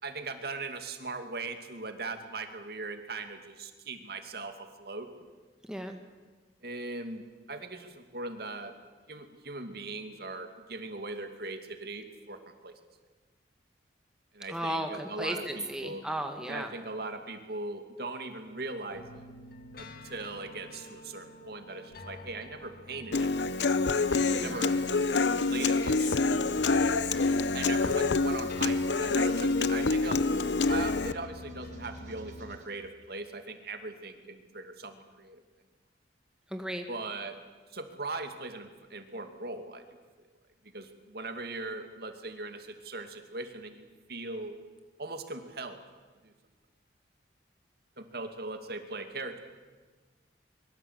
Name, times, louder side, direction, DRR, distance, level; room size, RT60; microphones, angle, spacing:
voice 1, 0.0-5.1 6.6-7.2 7.5-8.7 9.1-12.7 14.3-16.0 16.5-19.2 19.8-23.3 23.6-23.7 24.3-24.8 25.5-26.3 27.5-30.2 30.7-35.4 36.9-37.4 37.7-39.8 40.7-44.6 45.0-45.8 46.2-46.3 48.0-49.4, right 3 dB, 60° right, 6 dB, 2.5 m, -39 dB
voice 2, 5.6-6.0 14.5-16.7 24.2-24.6 36.5-36.9, right 1 dB, 5° right, 4 dB, 1.9 m, -35 dB
sound 1, 18.9-32.6, left 1 dB, 55° left, 2.0 m, -47 dB
sound 2, 23.0-32.7, right 3 dB, 40° right, 4.9 m, -55 dB
Human voice / Acoustic guitar, 23.1-31.1, left 3 dB, 75° left, 0.8 m, -27 dB
24.0 x 23.0 x 8.2 m, 1.3 s
head